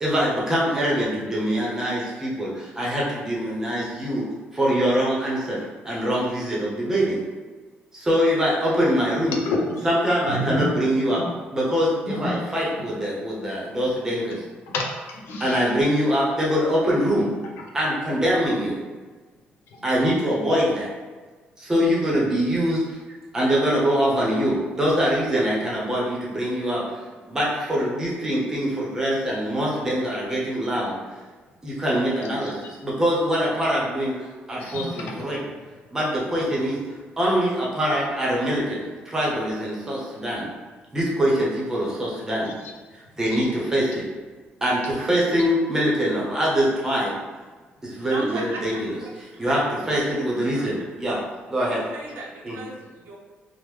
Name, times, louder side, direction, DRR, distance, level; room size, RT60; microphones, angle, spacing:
voice 1, 0.0-4.2 4.5-7.2 7.9-9.4 9.8-11.2 11.5-14.4 15.4-17.3 17.7-18.8 19.8-20.9 21.6-22.8 23.3-27.0 27.3-31.0 31.6-35.4 35.9-36.8 37.2-40.5 40.9-42.5 42.9-44.0 44.6-47.1 47.8-49.0 49.4-49.6 49.9-51.2 51.5-51.8 52.4-52.6, equal, 15° right, -5 dB, 0.7 m, -23 dB
voice 2, 9.3-9.8 10.3-10.6 12.1-12.3 14.7-15.6 32.4-32.5 34.6-35.4 42.4-42.8 43.3-43.5, left 2 dB, 85° left, 0 dB, 0.5 m, -29 dB
voice 3, 48.1-48.6 49.0-49.1 49.9-50.0 50.4-50.7 51.1-51.2 51.6-53.2, right 2 dB, 80° right, -3 dB, 0.5 m, -35 dB
3.5 x 2.1 x 3.1 m, 1.4 s
cardioid pair, 170°, 4 cm